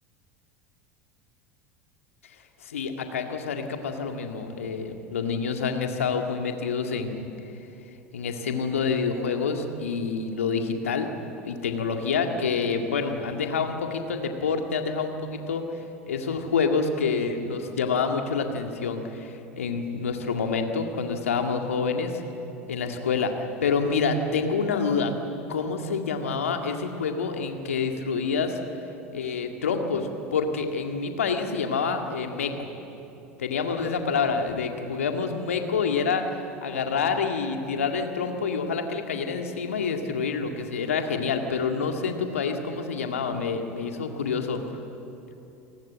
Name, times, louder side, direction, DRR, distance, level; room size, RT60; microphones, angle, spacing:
voice 1, 2.6-7.3 8.1-11.1 11.4-22.2 22.7-25.1 25.5-28.6 29.1-32.7 33.4-36.2 36.6-44.6, left 5 dB, 75° left, 4 dB, 2.1 m, -27 dB
29.0 x 19.5 x 7.6 m, 2.9 s
figure-of-eight pair, 75°, 7 cm